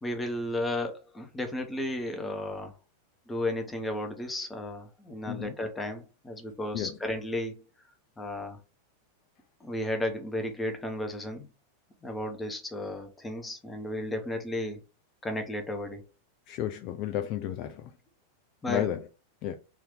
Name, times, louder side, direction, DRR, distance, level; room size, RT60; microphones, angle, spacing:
voice 1, 0.0-2.8 3.3-7.6 8.2-8.6 9.6-11.5 12.0-14.8 15.2-16.0 18.6-18.9, left 1 dB, 10° left, 0.9 m, -34 dB
voice 2, 16.5-17.9 18.7-19.0 19.4-19.5, left 11 dB, 40° left, 0.4 m, -32 dB
3.5 x 2.7 x 3.7 m
figure-of-eight pair, 90°, 0 cm